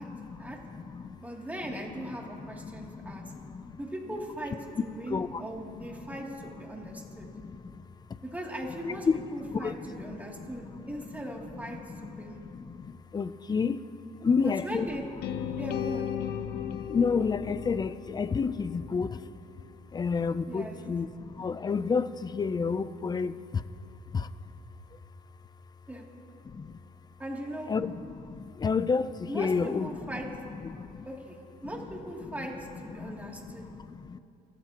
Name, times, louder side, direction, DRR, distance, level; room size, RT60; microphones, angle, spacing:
voice 1, 0.0-1.2 2.3-3.7 5.1-5.4 5.7-6.1 6.9-7.8 9.1-9.2 9.5-9.9 10.4-10.9 11.5-13.8 14.2-14.9 15.5-15.6 16.4-19.2 19.9-23.6 24.1-24.3 26.5-26.7 27.7-29.9 30.6-31.1 32.9-34.2, left 5 dB, 25° left, 14 dB, 0.5 m, -31 dB
voice 2, 1.2-3.2 3.8-7.3 8.2-12.4 14.4-15.1 15.6-16.1 20.5-20.8 25.9-26.1 27.2-27.7 29.3-30.3 31.0-33.7, right 1 dB, 10° right, -2 dB, 2.8 m, -39 dB
sound 1, 15.2-19.3, left 10 dB, 75° left, 0.7 m, -36 dB
30.0 x 14.5 x 3.0 m, 2.6 s
cardioid pair, 110°, 17 cm